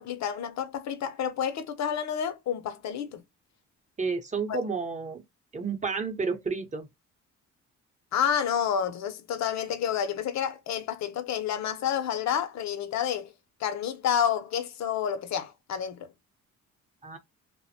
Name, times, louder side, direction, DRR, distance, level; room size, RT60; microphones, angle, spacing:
voice 1, 0.0-3.2 4.5-4.6 8.1-13.3 13.6-16.1, left 8 dB, 65° left, 0.6 m, -29 dB
voice 2, 4.0-5.2 5.5-6.9 17.0-17.2, right 4 dB, 25° right, 0.7 m, -31 dB
2.5 x 2.1 x 2.6 m
cardioid pair, 90°, 30 cm